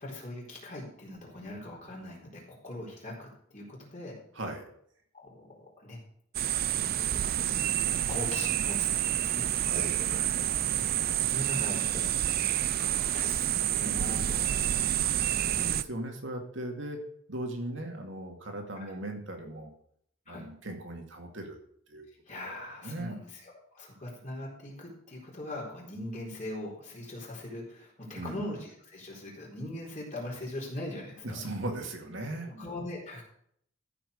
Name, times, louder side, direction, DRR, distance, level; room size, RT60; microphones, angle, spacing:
voice 1, 0.0-4.2 5.1-6.0 6.7-7.8 8.1-9.5 9.7-10.2 10.6-15.0 15.4-15.8 18.8-18.9 20.3-20.5 22.3-31.4 32.4-33.2, left 1 dB, 35° left, -3 dB, 4.1 m, -41 dB
voice 2, 4.3-4.6 9.5-10.4 15.0-17.0 17.3-19.7 20.3-21.6 21.9-22.5 22.8-23.2 28.1-28.4 31.2-32.5, right 1 dB, 60° right, 3 dB, 2.3 m, -38 dB
sound 1, 6.3-15.8, right 11 dB, 45° right, 0.4 m, -28 dB
14.0 x 6.0 x 6.5 m, 0.67 s
head